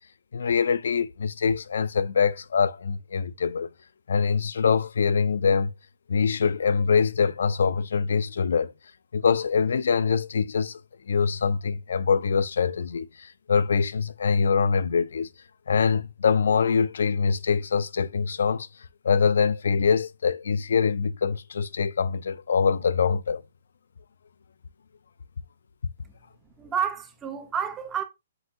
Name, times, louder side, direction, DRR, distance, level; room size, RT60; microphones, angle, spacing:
voice 1, 0.3-3.7 4.1-5.7 6.1-8.7 9.1-10.8 11.1-15.3 15.7-18.7 19.0-23.4, left 6 dB, 70° left, 0.4 m, -24 dB
voice 2, 26.6-28.0, right 8 dB, 10° right, 0.5 m, -29 dB
7.7 x 2.6 x 2.5 m
hypercardioid pair, 175°, 0 cm